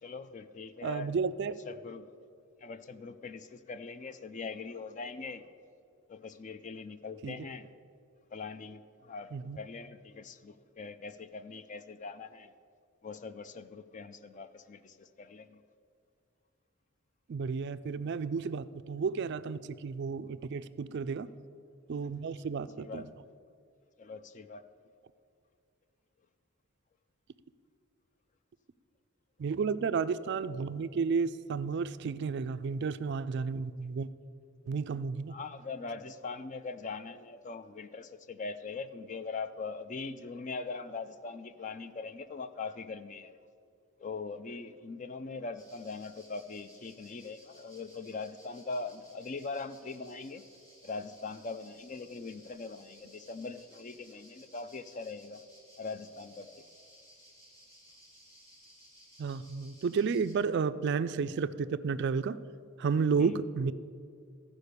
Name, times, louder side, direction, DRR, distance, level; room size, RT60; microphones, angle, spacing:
voice 1, 0.0-1.2 1.6-2.1 2.6-5.5 6.1-7.7 8.3-9.3 9.6-12.5 13.0-15.6 20.9-21.1 21.9-22.2 22.8-23.2 24.0-24.6 33.5-33.7 35.3-43.3 44.0-50.4 50.8-55.4 55.8-56.6 63.2-63.4, left 4 dB, 35° left, 11 dB, 0.4 m, -41 dB
voice 2, 0.8-1.5 7.2-7.3 9.3-9.6 17.3-21.3 21.9-23.0 29.4-34.1 34.7-35.3 59.2-62.4 62.8-63.7, right 5 dB, 50° right, 13 dB, 0.3 m, -32 dB
sound 1, 45.6-60.3, equal, 15° left, 2.2 m, -59 dB
14.0 x 5.1 x 6.7 m, 2.3 s
head